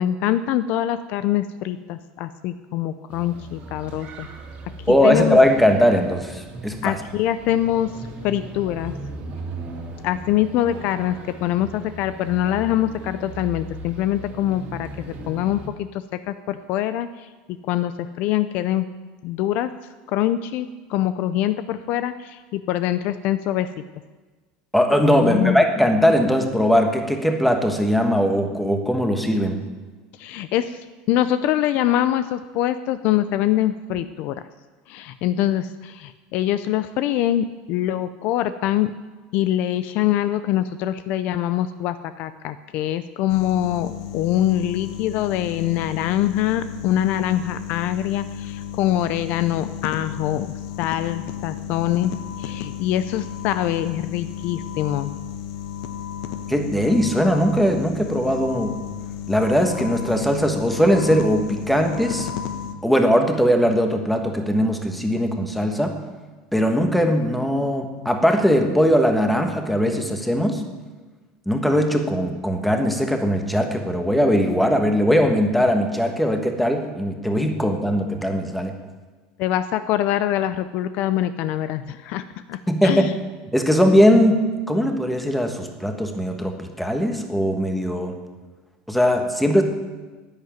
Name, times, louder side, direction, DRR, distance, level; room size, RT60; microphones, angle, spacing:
voice 1, 0.0-4.3 4.9-5.4 6.8-7.9 8.2-8.9 10.0-15.9 16.3-17.3 17.7-18.8 19.2-19.7 20.1-23.7 25.2-25.6 30.2-30.8 31.1-34.3 34.9-38.9 39.3-52.1 52.4-55.1 79.4-83.1, left 12 dB, 50° left, 12 dB, 0.5 m, -24 dB
sound 1, 3.1-15.7, right 2 dB, 40° right, 2.4 m, -38 dB
voice 2, 4.9-7.0 24.7-29.6 56.5-58.8 59.3-62.3 62.8-66.0 66.5-70.6 71.5-78.8 82.7-83.1 83.5-88.1 88.9-89.6, equal, ahead, 4 dB, 1.3 m, -20 dB
sound 2, 43.3-62.7, left 9 dB, 70° left, 1.2 m, -33 dB
10.5 x 9.5 x 9.1 m, 1.3 s
supercardioid pair, 155°, 4 cm